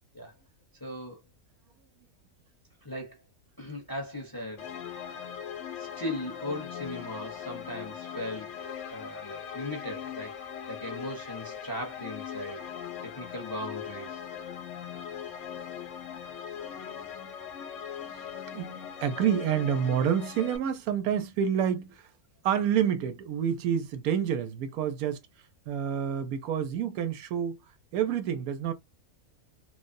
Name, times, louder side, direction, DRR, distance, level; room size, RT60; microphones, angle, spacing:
voice 1, 0.8-1.2 2.8-3.2 3.6-4.7 5.1-5.3 5.8-8.5 8.9-12.7 13.0-14.2, left 1 dB, 20° left, 0.7 m, -38 dB
sound 1, 4.6-20.6, left 8 dB, 65° left, 0.8 m, -40 dB
voice 2, 18.0-22.1 22.4-25.2 25.7-27.6 27.9-28.7, right 8 dB, 80° right, 1.1 m, -28 dB
3.2 x 2.0 x 2.6 m
omnidirectional pair, 1.5 m